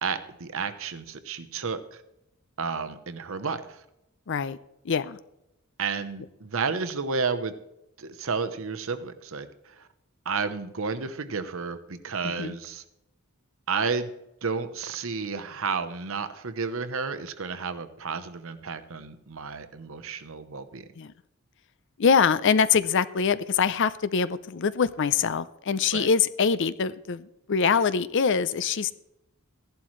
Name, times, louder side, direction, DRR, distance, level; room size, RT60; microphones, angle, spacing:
voice 1, 0.0-2.0 2.6-3.8 5.8-7.6 8.0-9.9 10.2-12.8 13.7-14.1 14.4-20.8 25.9-26.1, right 5 dB, 65° right, 10 dB, 0.9 m, -31 dB
voice 2, 4.3-4.6 4.8-5.2 12.2-12.6 21.0-21.1 22.0-28.9, left 6 dB, 55° left, 15 dB, 0.5 m, -24 dB
15.5 x 11.5 x 3.2 m, 0.86 s
head